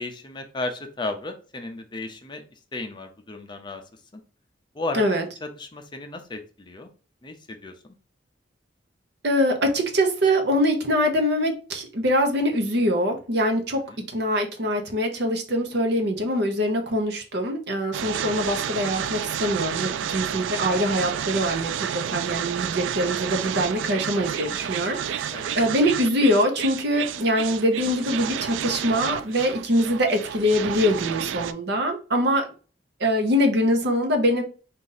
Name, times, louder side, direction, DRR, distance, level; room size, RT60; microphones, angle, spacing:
voice 1, 0.0-2.4 2.7-3.8 4.1-4.2 4.7-5.0 5.4-6.9 7.2-7.7 14.0-14.1 25.3-25.7, left 2 dB, 25° left, 5 dB, 0.5 m, -34 dB
voice 2, 4.9-5.2 9.2-13.8 14.1-32.5 33.0-34.4, equal, 60° right, 4 dB, 0.8 m, -23 dB
sound 1, 17.9-31.5, right 9 dB, 80° right, 0.3 m, -30 dB
4.0 x 2.5 x 3.9 m, 0.37 s
head